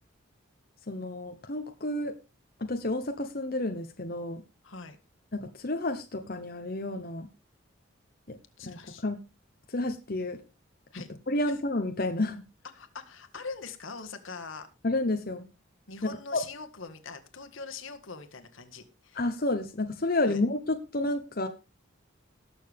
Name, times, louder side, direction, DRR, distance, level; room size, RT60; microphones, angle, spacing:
voice 1, 0.9-2.1 2.6-4.4 5.3-7.3 8.3-8.4 8.6-9.2 9.7-10.4 11.3-12.4 14.8-15.4 16.3-16.4 19.1-21.5, left 2 dB, 45° left, 5 dB, 1.0 m, -30 dB
voice 2, 4.6-5.0 8.6-9.0 10.9-11.1 11.5-11.6 12.7-14.7 15.9-19.2 20.3-20.4, left 4 dB, 75° left, 7 dB, 1.7 m, -42 dB
19.0 x 6.8 x 3.5 m, 0.29 s
head